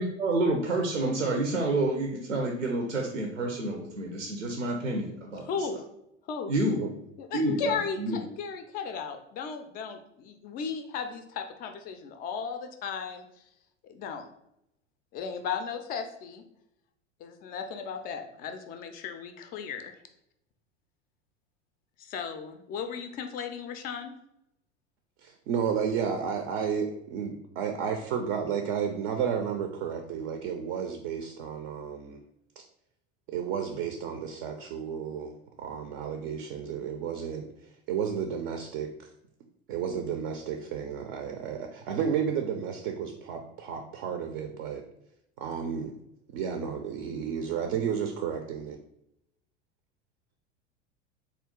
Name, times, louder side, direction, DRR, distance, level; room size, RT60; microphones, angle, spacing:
voice 1, 0.0-5.4 6.5-6.8 7.3-8.2, right 2 dB, 85° right, 1 dB, 0.7 m, -29 dB
voice 2, 5.5-5.8 6.3-6.5 7.2-13.3 13.8-14.2 15.1-16.4 17.2-19.9 22.0-24.1, left 6 dB, 25° left, 7 dB, 0.4 m, -35 dB
voice 3, 25.2-32.2 32.6-32.7 33.3-37.4 37.9-38.9 39.7-44.8 45.4-45.9 46.3-48.8, right 7 dB, 40° right, 4 dB, 0.5 m, -32 dB
3.7 x 2.3 x 3.6 m, 0.79 s
figure-of-eight pair, 80°, 35 cm